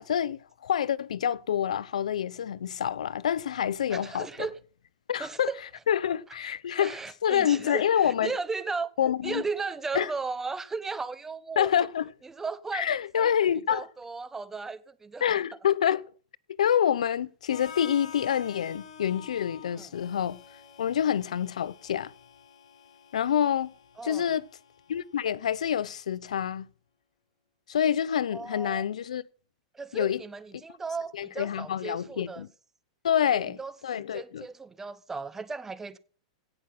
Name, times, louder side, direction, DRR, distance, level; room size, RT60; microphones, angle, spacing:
voice 1, 0.0-4.5 5.1-5.5 5.9-8.3 9.0-9.4 9.9-10.1 11.6-12.1 12.7-13.9 15.2-16.1 16.5-20.4 20.8-22.1 23.1-23.7 24.0-24.5 24.9-26.7 27.7-29.2 29.9-30.2 31.1-32.5 33.0-34.5, left 9 dB, 90° left, 0.6 m, -27 dB
voice 2, 3.9-4.6 5.2-5.6 6.8-8.9 9.2-11.9 12.4-13.3 13.7-15.2 19.8-19.9 24.0-24.3 28.3-28.8 29.7-32.4 33.3-36.0, right 4 dB, 10° right, 1.0 m, -36 dB
Harmonica, 17.5-25.4, left 7 dB, 75° left, 3.1 m, -48 dB
17.0 x 6.2 x 5.9 m
hypercardioid pair, 135°, 4 cm